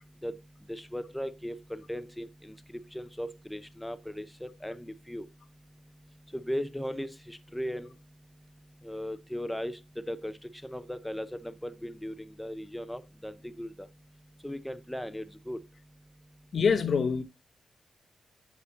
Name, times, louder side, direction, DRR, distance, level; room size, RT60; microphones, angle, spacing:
voice 1, 0.7-2.5 2.9-5.2 6.3-7.9 8.8-9.8 10.1-10.3 10.6-13.7 14.4-15.6, equal, 5° left, 0.6 m, -37 dB
voice 2, 16.5-17.2, left 5 dB, 60° left, 0.9 m, -25 dB
8.3 x 8.0 x 2.6 m
wide cardioid pair, 110°, 0 cm